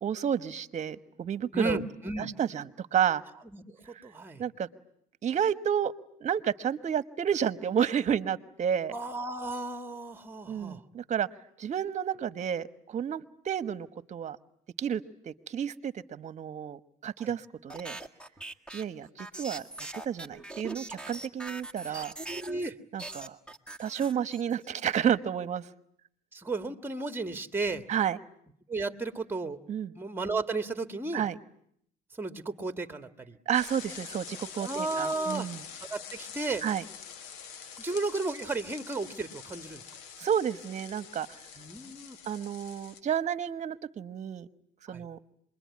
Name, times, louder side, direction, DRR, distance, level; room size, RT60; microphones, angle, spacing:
voice 1, 0.0-1.8 2.2-3.2 4.4-4.7 5.2-5.9 6.2-8.9 10.5-11.3 11.6-14.4 14.8-18.0 18.7-19.6 20.0-22.1 22.9-23.4 23.8-25.7 27.9-28.2 29.7-29.9 31.1-31.4 33.5-35.6 36.6-36.8 40.2-41.3 42.3-44.5 44.9-45.2, right 8 dB, 40° right, 14 dB, 1.2 m, -31 dB
voice 2, 1.5-2.3 3.5-4.4 8.9-10.8 17.2-17.3 21.9-22.8 26.3-27.9 28.7-29.6 30.0-31.3 32.2-33.4 34.6-35.5 35.9-36.6 37.8-39.8 41.6-42.2 44.9-45.0, right 3 dB, 10° right, 9 dB, 1.8 m, -34 dB
sound 1, 17.7-22.7 23.0-24.7, right 2 dB, 5° left, 1.8 m, -42 dB
sound 2, 33.5-43.0, left 7 dB, 85° left, 1.7 m, -46 dB
27.0 x 22.0 x 9.6 m, 0.71 s
supercardioid pair, 95°, 18 cm